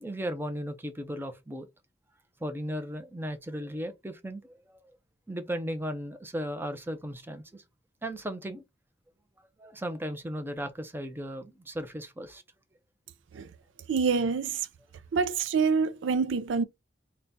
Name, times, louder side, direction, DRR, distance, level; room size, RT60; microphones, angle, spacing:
voice 1, 0.0-1.7 2.4-4.8 5.3-7.6 8.0-8.6 9.6-12.4, equal, 10° right, 0.6 m, -36 dB
voice 2, 13.9-14.6 15.1-16.6, right 5 dB, 90° right, 0.4 m, -26 dB
3.9 x 2.3 x 3.9 m
head